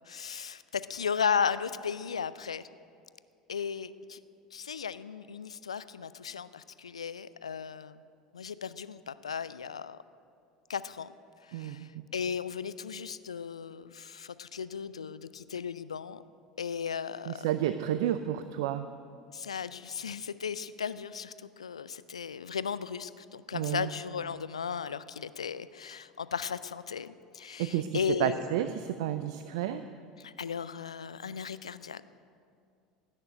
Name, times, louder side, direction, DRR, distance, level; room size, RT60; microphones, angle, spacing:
voice 1, 0.1-2.6 3.5-4.2 4.5-8.0 8.3-10.0 10.7-11.1 11.4-16.2 16.6-17.5 19.3-28.4 30.2-32.0, left 7 dB, 80° left, 15 dB, 0.4 m, -35 dB
voice 2, 11.5-11.9 17.3-18.9 23.5-23.9 27.6-29.8, right 11 dB, 60° right, 10 dB, 0.5 m, -31 dB
17.0 x 6.6 x 9.7 m, 2.3 s
figure-of-eight pair, 70°, 3 cm